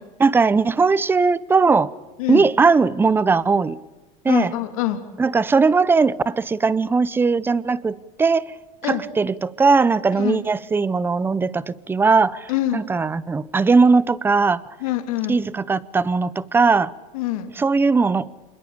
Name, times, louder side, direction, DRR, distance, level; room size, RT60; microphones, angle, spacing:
voice 1, 0.2-1.9 2.3-3.8 4.2-4.5 5.2-8.5 8.9-14.8 15.3-16.9 17.5-18.3, right 4 dB, 10° right, 0.8 m, -19 dB
voice 2, 4.3-5.0 8.8-9.0 10.2-10.4 12.5-12.8 14.8-15.4 17.1-17.5, left 14 dB, 80° left, 3.2 m, -24 dB
27.0 x 22.0 x 8.6 m
supercardioid pair, 140°, 18 cm